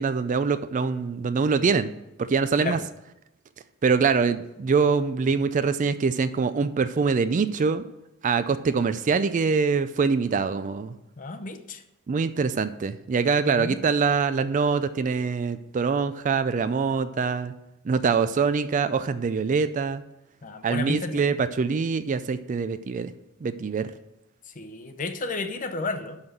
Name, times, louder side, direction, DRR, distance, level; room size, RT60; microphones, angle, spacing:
voice 1, 0.0-1.9 2.2-2.8 3.8-7.8 8.2-10.9 12.1-17.5 17.8-20.0 20.6-23.1 23.4-23.9, right 5 dB, 35° right, 12 dB, 0.3 m, -24 dB
voice 2, 11.2-11.8 13.5-13.8 20.4-21.4 24.5-26.2, left 3 dB, 35° left, 7 dB, 0.7 m, -32 dB
6.1 x 5.6 x 6.6 m, 0.90 s
head